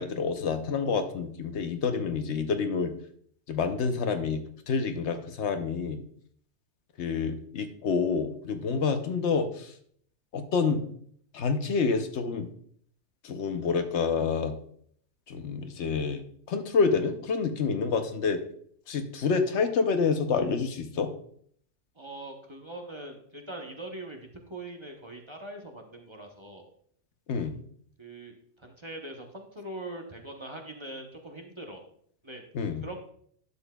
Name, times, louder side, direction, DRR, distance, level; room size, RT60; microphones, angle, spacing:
voice 1, 0.0-2.9 3.5-4.4 4.7-6.0 7.0-9.7 10.3-10.9 11.3-12.5 13.2-14.5 15.3-18.4 18.9-21.1 27.3-27.6 32.5-32.9, left 5 dB, 75° left, 7 dB, 1.0 m, -28 dB
voice 2, 22.0-26.7 28.0-31.8 32.2-32.4 32.8-33.0, right 1 dB, 30° right, 2 dB, 0.8 m, -42 dB
11.0 x 7.0 x 2.2 m, 0.62 s
omnidirectional pair, 1.2 m